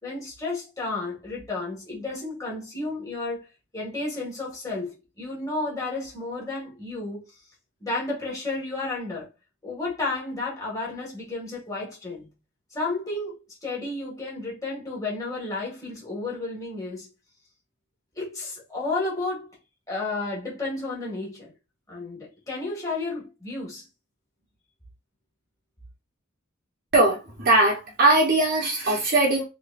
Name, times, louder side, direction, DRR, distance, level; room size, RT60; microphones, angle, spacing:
voice 1, 0.0-3.4 3.7-7.2 7.8-9.3 9.6-12.3 12.7-17.1 18.1-19.6 19.9-21.5 21.9-23.8, left 2 dB, 15° left, 1.7 m, -32 dB
voice 2, 26.9-29.4, right 2 dB, 55° right, 1.0 m, -20 dB
3.9 x 3.1 x 2.5 m
head